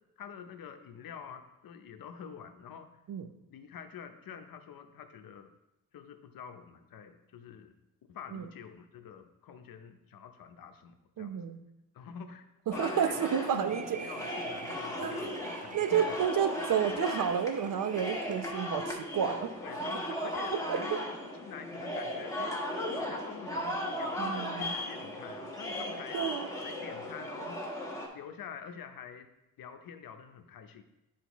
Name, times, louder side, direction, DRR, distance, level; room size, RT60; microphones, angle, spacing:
voice 1, 0.2-2.9 3.5-5.5 5.9-7.8 8.1-11.4 11.9-13.3 13.5-16.2 19.6-22.6 23.0-26.2 26.6-27.7 28.1-29.3 29.6-30.8, left 7 dB, 75° left, 7 dB, 0.8 m, -47 dB
voice 2, 11.2-11.6 12.7-14.0 15.0-15.2 15.7-19.5 20.7-20.8 24.2-24.7 26.1-26.5, right 8 dB, 65° right, 8 dB, 0.7 m, -30 dB
sound 1, 12.7-28.1, left 1 dB, 10° left, 1.5 m, -37 dB
sound 2, 12.7-18.6, right 5 dB, 25° right, 0.3 m, -48 dB
9.0 x 4.3 x 3.1 m, 0.94 s
cardioid pair, 95°, 35 cm